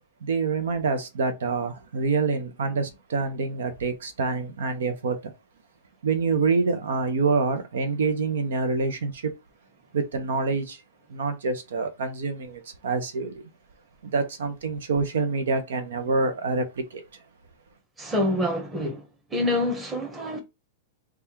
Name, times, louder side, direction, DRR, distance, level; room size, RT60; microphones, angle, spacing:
voice 1, 0.2-5.3 6.0-9.3 9.9-10.8 11.1-13.4 14.0-17.0, right 4 dB, 85° right, 0.7 m, -26 dB
voice 2, 18.0-19.0 19.3-20.4, left 1 dB, 15° right, 1.1 m, -26 dB
3.4 x 2.4 x 4.4 m
hypercardioid pair, 135°, 0 cm